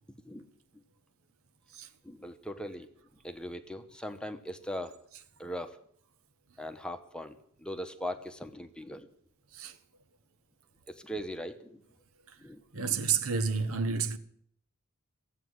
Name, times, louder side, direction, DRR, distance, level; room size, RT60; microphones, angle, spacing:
voice 1, 2.0-2.9 3.2-5.0 5.4-5.8 6.6-9.1 10.9-11.8 12.4-13.1, equal, 5° left, 0.9 m, -40 dB
voice 2, 12.7-14.2, right 5 dB, 75° right, 1.2 m, -30 dB
16.5 x 8.3 x 9.6 m
head